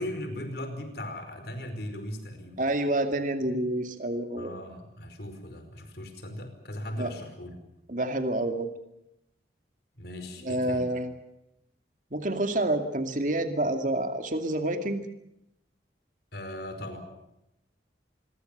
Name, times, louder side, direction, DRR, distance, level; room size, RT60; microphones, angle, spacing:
voice 1, 0.0-2.7 4.4-7.6 10.0-10.9 16.3-17.0, left 1 dB, 60° left, 8 dB, 5.0 m, -38 dB
voice 2, 2.6-4.5 7.0-7.1 7.9-8.7 10.4-11.1 12.1-15.0, right 1 dB, 45° right, 7 dB, 2.4 m, -28 dB
26.5 x 22.0 x 6.7 m, 0.84 s
head